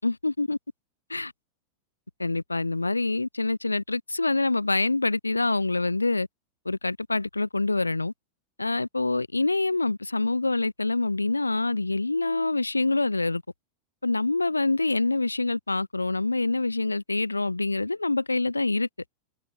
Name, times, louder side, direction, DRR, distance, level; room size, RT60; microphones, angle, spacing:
voice 1, 0.0-0.6 1.1-1.3 2.2-6.3 6.6-8.1 8.6-13.4 14.0-18.9, left 2 dB, 80° left, 0.8 m, -26 dB
open air
figure-of-eight pair, 90°, 0 cm